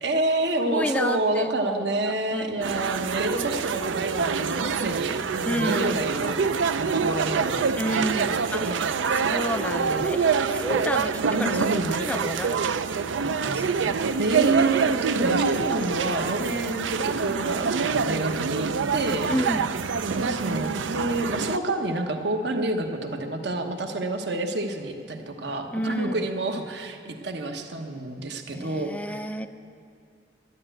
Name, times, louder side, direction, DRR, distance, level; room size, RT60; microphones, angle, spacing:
voice 1, 0.0-6.4 6.8-7.7 8.1-8.9 9.2-9.6 11.3-12.1 13.7-13.9 14.2-19.3 20.2-29.2, right 2 dB, 65° right, 5 dB, 1.1 m, -28 dB
voice 2, 0.7-2.7 5.5-6.0 7.8-8.7 9.2-12.6 13.2-14.0 19.3-19.7 25.7-26.3 28.5-29.5, equal, 5° left, 10 dB, 0.4 m, -31 dB
sound 1, 2.6-21.6, right 5 dB, 85° right, 0.5 m, -26 dB
11.5 x 11.0 x 9.0 m, 2.3 s
head